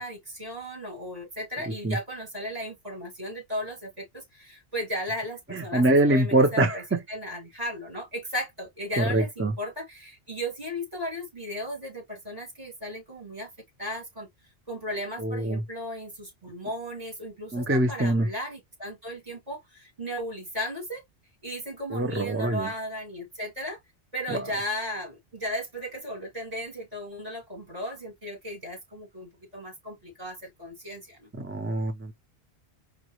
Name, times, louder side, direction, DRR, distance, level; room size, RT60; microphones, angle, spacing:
voice 1, 0.0-6.8 7.1-13.5 13.8-14.3 14.7-21.0 21.4-23.8 24.1-31.3, equal, 35° right, 2.5 m, -35 dB
voice 2, 5.5-7.0 9.0-9.5 15.2-15.6 17.5-18.3 21.9-22.7 24.3-24.5 31.3-32.1, right 2 dB, 20° right, 0.4 m, -24 dB
5.1 x 2.2 x 3.0 m
omnidirectional pair, 1.1 m